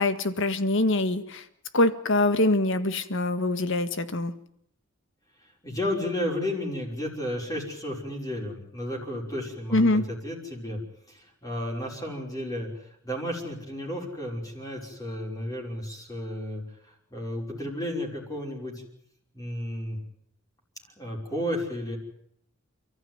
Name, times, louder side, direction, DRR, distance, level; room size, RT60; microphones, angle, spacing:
voice 1, 0.0-1.4 1.7-4.3 9.7-10.0, left 2 dB, 60° left, 10 dB, 1.7 m, -24 dB
voice 2, 5.6-10.8 11.1-12.7 13.0-16.6 17.1-18.8 19.3-20.0 21.0-22.0, left 1 dB, 15° left, -2 dB, 5.6 m, -32 dB
29.5 x 14.5 x 9.5 m, 0.71 s
head